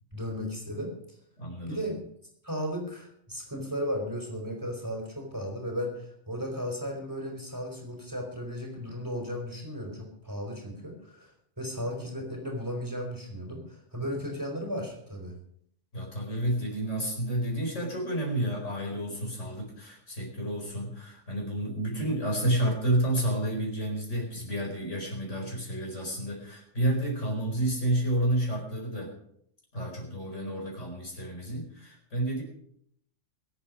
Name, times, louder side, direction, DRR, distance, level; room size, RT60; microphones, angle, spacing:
voice 1, 0.1-1.2 1.7-2.1 2.4-11.3 11.6-15.3, equal, 20° right, 0 dB, 4.1 m, -35 dB
voice 2, 1.4-1.8 15.9-29.1 29.7-32.4, right 1 dB, 75° left, 0 dB, 5.0 m, -30 dB
22.5 x 8.5 x 5.3 m, 0.72 s
omnidirectional pair, 1.3 m